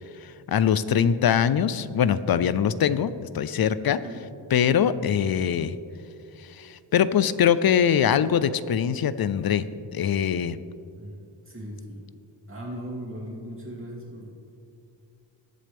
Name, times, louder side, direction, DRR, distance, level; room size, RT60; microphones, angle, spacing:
voice 1, 0.2-4.0 4.5-5.7 6.4-9.6 9.9-10.6, left 8 dB, 55° left, 15 dB, 0.6 m, -23 dB
voice 2, 11.0-12.0 12.5-14.3, equal, 25° right, -4 dB, 2.8 m, -38 dB
22.0 x 7.6 x 3.5 m, 2.6 s
wide cardioid pair, 105°, 45 cm